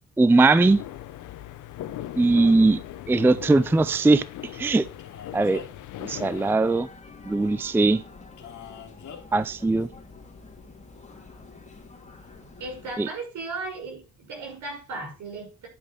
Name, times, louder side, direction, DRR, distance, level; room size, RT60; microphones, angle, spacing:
voice 1, 0.2-0.8 2.2-2.8 3.1-4.2 4.5-4.9 5.3-5.6 6.0-6.9 7.3-8.0 9.3-9.9 13.0-13.1, right 3 dB, 10° right, 0.4 m, -20 dB
sound 1, 0.6-6.5, left 12 dB, 85° left, 1.0 m, -39 dB
Male speech man speaking, 5.0-5.9 8.4-9.2, left 7 dB, 70° left, 2.4 m, -43 dB
sound 2, 6.6-13.0, left 3 dB, 20° left, 2.8 m, -47 dB
voice 2, 12.6-15.7, right 3 dB, 75° right, 5.8 m, -36 dB
10.5 x 5.3 x 5.3 m
cardioid pair, 90°, 30 cm